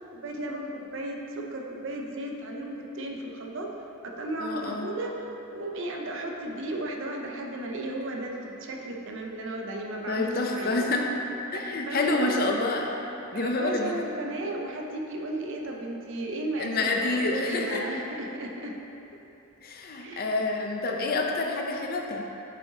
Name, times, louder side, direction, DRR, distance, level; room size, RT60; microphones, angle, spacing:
voice 1, 0.1-3.7 4.0-10.9 11.5-12.5 13.3-18.8 20.0-20.5, right 1 dB, 60° right, 1 dB, 0.6 m, -35 dB
voice 2, 4.4-4.9 10.1-11.0 11.5-12.9 13.3-14.0 16.6-17.8 19.6-22.2, left 2 dB, 45° left, 1 dB, 0.6 m, -28 dB
7.5 x 5.5 x 2.8 m, 2.9 s
head